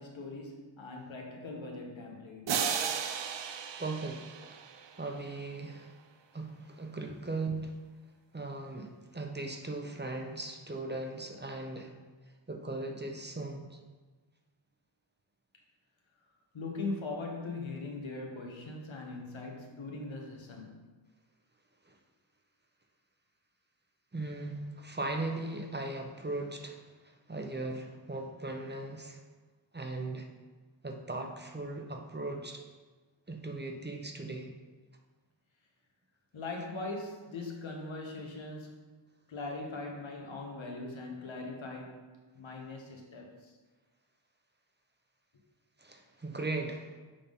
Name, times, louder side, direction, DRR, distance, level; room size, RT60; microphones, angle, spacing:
voice 1, 0.0-2.7 16.5-20.9 36.3-38.8 39.3-42.0 42.3-43.5, left 3 dB, 80° left, 1 dB, 1.2 m, -40 dB
sound 1, 2.5-5.3, right 7 dB, 70° right, 0.6 m, -35 dB
voice 2, 3.4-4.7 5.0-6.0 6.3-7.7 8.3-11.9 12.5-13.8 21.9-22.0 24.1-29.2 29.7-30.3 30.8-32.6 33.3-34.5 45.8-46.9, right 2 dB, 25° right, 2 dB, 0.7 m, -38 dB
6.9 x 3.6 x 5.3 m, 1.3 s
wide cardioid pair, 90°, 46 cm